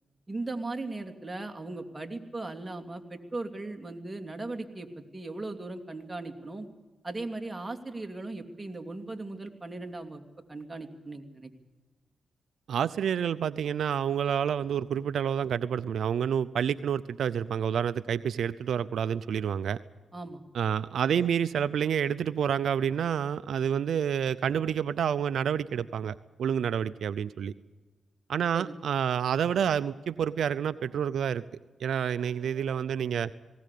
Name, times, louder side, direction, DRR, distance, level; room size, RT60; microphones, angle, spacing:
voice 1, 0.3-6.7 7.0-10.2 10.5-11.5 20.1-20.4 28.5-28.7, right 2 dB, 20° right, 5 dB, 2.7 m, -38 dB
voice 2, 12.7-19.8 20.5-27.5 28.3-31.4 31.8-33.3, right 8 dB, 80° right, 14 dB, 0.6 m, -28 dB
19.5 x 18.5 x 8.4 m, 1.3 s
cardioid pair, 70°, 0 cm